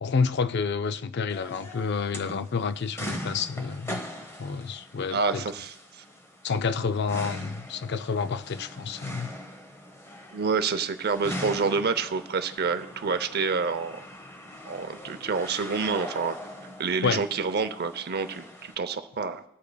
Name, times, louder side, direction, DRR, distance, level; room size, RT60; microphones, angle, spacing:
voice 1, 0.0-4.0 4.4-5.4 6.4-9.3 17.0-17.2, left 5 dB, 55° left, 0.4 m, -29 dB
sound 1, 1.3-18.7, equal, 15° left, 0.9 m, -41 dB
voice 2, 5.1-5.7 10.3-14.0 14.7-16.4 16.8-19.4, right 5 dB, 50° right, 0.6 m, -28 dB
21.0 x 8.3 x 2.3 m
head